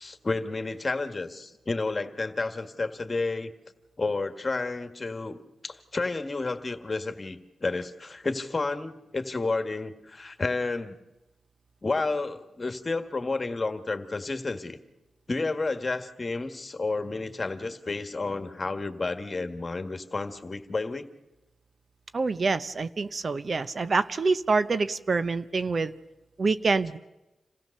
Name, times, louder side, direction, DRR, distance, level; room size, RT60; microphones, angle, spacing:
voice 1, 0.0-3.5 4.0-5.4 5.6-11.0 11.8-14.8 15.3-21.1, left 3 dB, 40° left, 8 dB, 1.7 m, -31 dB
voice 2, 22.1-25.9 26.4-27.0, right 4 dB, 50° right, 13 dB, 0.7 m, -26 dB
27.5 x 15.5 x 6.6 m, 1.0 s
cardioid pair, 55°, 0 cm